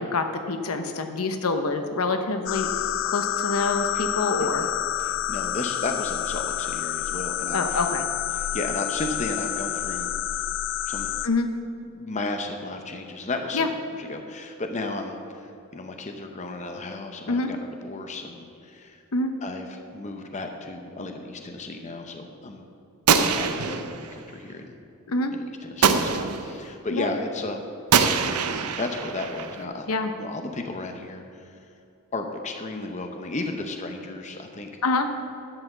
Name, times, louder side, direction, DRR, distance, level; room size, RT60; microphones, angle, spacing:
voice 1, 0.0-2.9 3.1-4.7 7.5-8.0 11.2-11.5 13.5-13.7 17.3-17.5 19.1-19.3 25.1-25.3 26.9-27.1 29.9-30.1 34.8-35.1, left 3 dB, 70° left, 7 dB, 0.8 m, -26 dB
sound 1, 2.5-11.3, left 11 dB, 55° left, 0.3 m, -28 dB
voice 2, 4.4-4.7 5.0-7.8 8.3-10.1 10.9-11.1 11.9-13.7 13.9-19.0 19.4-22.6 23.2-24.7 25.3-27.6 28.8-29.9 30.2-31.6 32.1-34.7, left 2 dB, 30° left, 5 dB, 0.7 m, -34 dB
Gunshot gunfire, 23.1-24.2 25.8-26.6 27.9-29.6, right 6 dB, 90° right, 0.7 m, -23 dB
11.5 x 5.6 x 7.4 m, 2.7 s
head